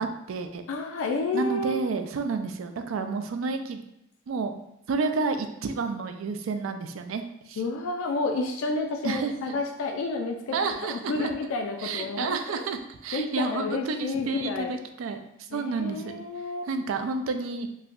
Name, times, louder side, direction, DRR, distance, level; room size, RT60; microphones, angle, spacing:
voice 1, 0.0-0.6 1.3-3.8 4.3-4.6 4.9-7.6 9.0-9.5 10.5-11.3 11.8-15.2 15.5-16.0 16.7-17.7, right 4 dB, 85° right, 7 dB, 0.3 m, -30 dB
voice 2, 0.7-1.9 7.6-12.6 13.1-14.8 15.5-16.7, left 3 dB, 85° left, 3 dB, 0.3 m, -30 dB
4.2 x 2.1 x 2.4 m, 0.80 s
head